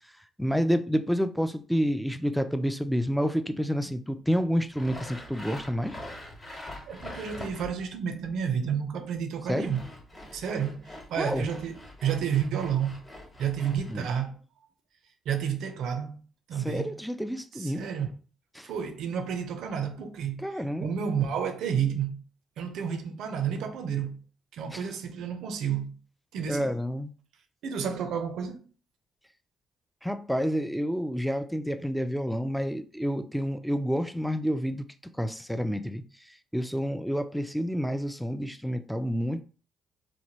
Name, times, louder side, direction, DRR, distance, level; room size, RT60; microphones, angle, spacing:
voice 1, 0.4-6.0 9.5-9.7 11.2-11.5 13.9-14.1 16.6-17.8 18.6-18.7 20.4-20.9 24.7-24.8 26.5-27.1 30.0-34.8 35.2-36.0 36.5-39.4, equal, ahead, 0.3 m, -29 dB
Sawing, 4.7-7.9 9.4-13.9, left 1 dB, 20° left, 1.0 m, -44 dB
voice 2, 6.9-9.9 10.3-13.0 13.4-14.4 15.3-16.2 16.5-16.9 17.5-18.1 18.6-22.2 22.6-24.2 24.5-26.0 26.3-26.7 27.6-28.7, right 7 dB, 80° right, 0.5 m, -31 dB
3.0 x 2.2 x 2.8 m
cardioid pair, 90°, 0 cm